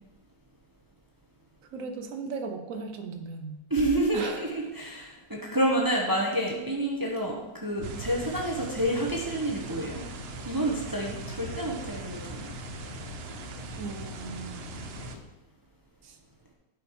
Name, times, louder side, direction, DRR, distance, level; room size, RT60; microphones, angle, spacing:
voice 1, 1.7-3.6 4.1-4.5 13.8-14.9 16.0-16.2, right 4 dB, 60° right, 5 dB, 1.2 m, -37 dB
voice 2, 3.7-10.0 10.5-12.5, right 1 dB, 15° right, -1 dB, 0.8 m, -29 dB
sound 1, 7.8-15.2, left 5 dB, 50° left, 1.0 m, -43 dB
sound 2, 7.8-15.2, right 7 dB, 90° right, 0.5 m, -42 dB
8.4 x 5.2 x 4.7 m, 1.0 s
omnidirectional pair, 1.7 m